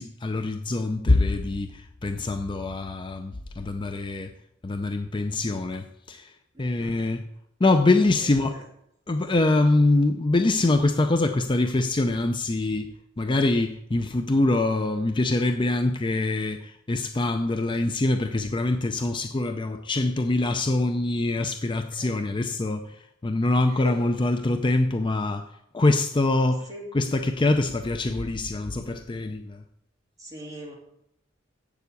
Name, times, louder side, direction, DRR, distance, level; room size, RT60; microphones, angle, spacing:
voice 1, 0.0-4.3 4.6-6.3 6.6-7.2 7.6-8.6 9.1-12.9 13.2-23.0 23.2-25.4 25.7-26.7 26.9-29.6, left 2 dB, 25° left, 0.5 m, -24 dB
voice 2, 6.5-7.1 8.2-8.6 22.0-22.2 22.5-22.6 23.7-24.0 26.7-26.9 30.2-30.7, equal, 20° right, 3.0 m, -41 dB
8.0 x 7.0 x 8.2 m
head